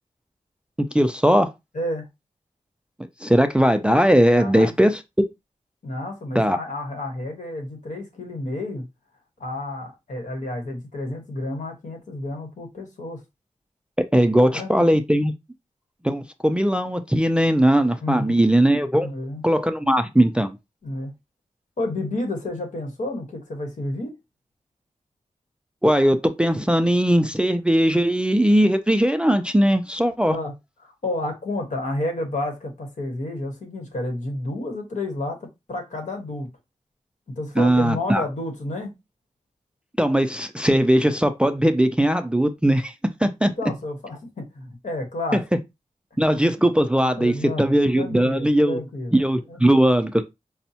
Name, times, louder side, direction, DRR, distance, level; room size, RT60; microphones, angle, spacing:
voice 1, 0.9-1.5 3.2-5.0 6.3-6.6 14.0-15.3 16.0-19.1 19.4-20.5 25.8-30.4 37.6-38.2 40.0-42.9 43.2-43.5 45.3-45.4 46.2-48.8 49.1-50.2, right 1 dB, 10° right, 0.3 m, -19 dB
voice 2, 1.7-2.1 4.3-4.7 5.8-8.9 9.4-13.2 14.4-15.0 18.0-18.4 19.0-19.4 20.8-21.1 21.8-24.1 30.3-30.5 30.8-36.5 37.4-38.9 43.4-45.4 47.1-49.1 49.5-49.6, left 1 dB, 70° left, 1.1 m, -30 dB
5.2 x 2.0 x 2.7 m
wide cardioid pair, 100°, 13 cm